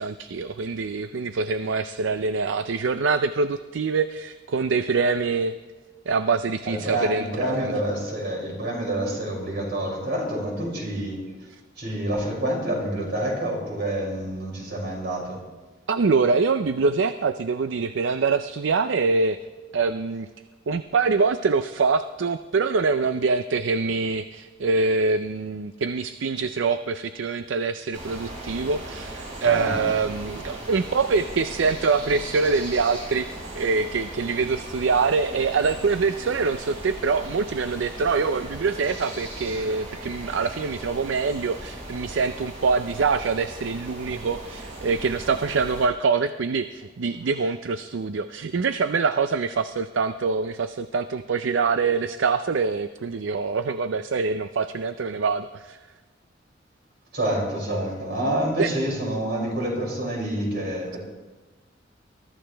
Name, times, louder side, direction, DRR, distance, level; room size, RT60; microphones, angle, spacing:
voice 1, 0.0-5.5 6.1-7.7 15.9-19.4 19.7-20.3 20.7-55.8 58.6-58.7, right 4 dB, 80° right, 11 dB, 0.5 m, -24 dB
voice 2, 6.6-11.2 11.8-15.4 29.4-29.9 57.1-61.0, right 1 dB, 60° right, -3 dB, 6.2 m, -27 dB
sound 1, 27.9-45.9, right 1 dB, 35° right, 5.5 m, -38 dB
23.0 x 13.5 x 3.4 m, 1.3 s
head